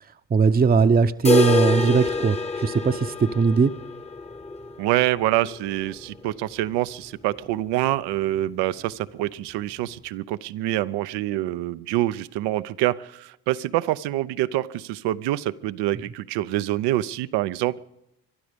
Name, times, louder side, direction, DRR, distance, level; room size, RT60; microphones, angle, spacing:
voice 1, 0.3-3.7, right 5 dB, 25° right, 9 dB, 0.7 m, -19 dB
sound 1, 1.2-7.1 7.3-7.4 7.8-7.9 8.4-8.5 9.4-9.5, left 3 dB, 15° left, 0.9 m, -27 dB
voice 2, 4.8-17.8, right 15 dB, 85° right, 16 dB, 0.7 m, -26 dB
22.5 x 12.0 x 5.1 m, 0.84 s
supercardioid pair, 70°, 40 cm